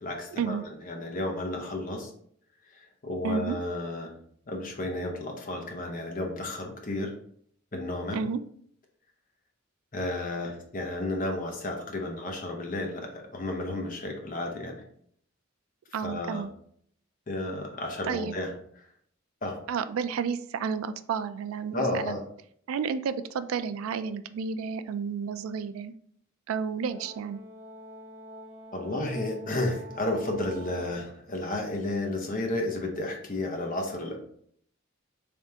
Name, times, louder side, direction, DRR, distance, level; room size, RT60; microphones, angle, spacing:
voice 1, 0.0-2.1 2.7-4.1 4.5-7.1 7.7-8.2 9.9-14.8 16.0-16.4 17.3-18.9 19.4-19.6 21.7-22.2 28.7-34.2, left 1 dB, 40° left, 2 dB, 0.8 m, -32 dB
voice 2, 3.2-3.6 8.1-8.4 15.9-16.5 18.1-18.3 19.7-22.1 22.7-25.9 26.5-27.4, right 6 dB, 85° right, 11 dB, 0.3 m, -31 dB
Brass instrument, 26.9-31.1, right 1 dB, 25° right, 1.5 m, -46 dB
3.4 x 3.3 x 2.8 m, 0.63 s
head